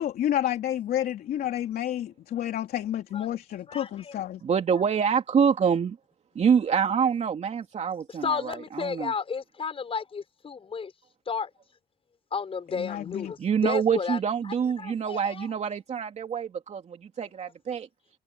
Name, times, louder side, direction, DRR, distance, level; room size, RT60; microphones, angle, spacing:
voice 1, 0.0-4.4 12.7-13.3, left 11 dB, 65° left, 3.3 m, -30 dB
voice 2, 3.7-4.2 4.5-4.8 8.2-10.9 11.3-11.5 12.3-14.2 14.4-15.5, left 5 dB, 35° left, 6.4 m, -33 dB
voice 3, 4.4-6.0 6.3-9.1 13.4-17.9, right 7 dB, 40° right, 2.7 m, -26 dB
cardioid pair, 110°, 17 cm